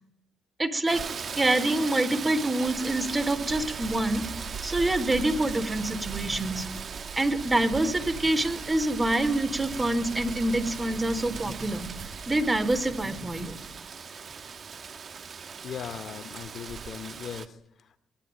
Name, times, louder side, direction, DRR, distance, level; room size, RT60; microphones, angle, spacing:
voice 1, 0.6-1.0 1.4-4.2 4.6-6.7 7.2-11.9 12.3-13.6, right 1 dB, 20° right, 14 dB, 4.1 m, -26 dB
Rain, 0.9-17.5, right 6 dB, 45° right, 1.8 m, -39 dB
sound 1, 2.8-13.8, right 6 dB, 65° right, 5.1 m, -43 dB
voice 2, 15.6-18.0, left 8 dB, 60° left, 12 dB, 2.5 m, -39 dB
25.0 x 22.0 x 8.9 m, 0.77 s
cardioid pair, 90°, 0 cm